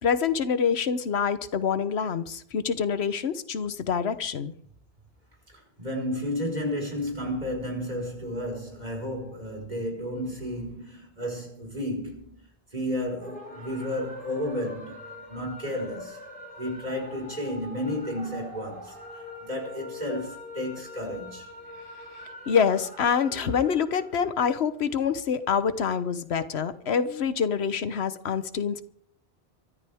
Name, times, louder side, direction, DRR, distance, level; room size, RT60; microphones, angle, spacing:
voice 1, 0.0-4.5 22.5-28.8, left 6 dB, 90° left, 1.2 m, -26 dB
voice 2, 5.5-12.4 12.7-16.2 16.6-21.5, left 1 dB, 45° right, 5.3 m, -32 dB
sound 1, 13.2-27.7, left 1 dB, 10° left, 6.4 m, -45 dB
24.0 x 13.5 x 3.6 m
omnidirectional pair, 1.1 m